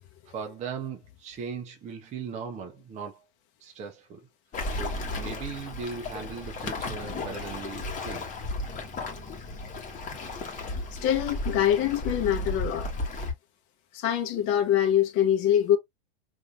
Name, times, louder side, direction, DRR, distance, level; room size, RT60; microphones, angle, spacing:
voice 1, 0.3-3.2 3.6-4.3 4.8-8.3, right 6 dB, 20° right, 0.7 m, -38 dB
Waves surf, 4.5-13.3, left 2 dB, 25° left, 1.2 m, -34 dB
voice 2, 10.9-12.9 13.9-15.8, left 10 dB, 40° left, 0.8 m, -24 dB
3.5 x 2.6 x 2.4 m
hypercardioid pair, 120°, 32 cm